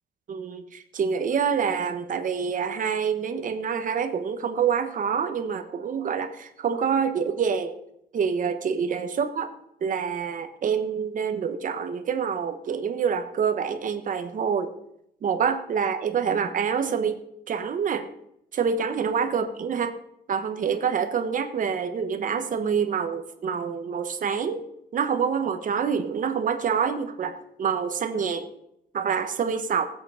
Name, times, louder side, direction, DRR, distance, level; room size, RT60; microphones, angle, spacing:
voice 1, 0.3-7.8 8.1-9.5 9.8-14.7 15.2-17.2 17.5-18.1 18.5-19.9 20.3-24.6 24.9-28.5 28.9-29.9, right 6 dB, 50° right, 7 dB, 1.3 m, -26 dB
18.0 x 7.9 x 5.1 m, 0.78 s
cardioid pair, 150°, 17 cm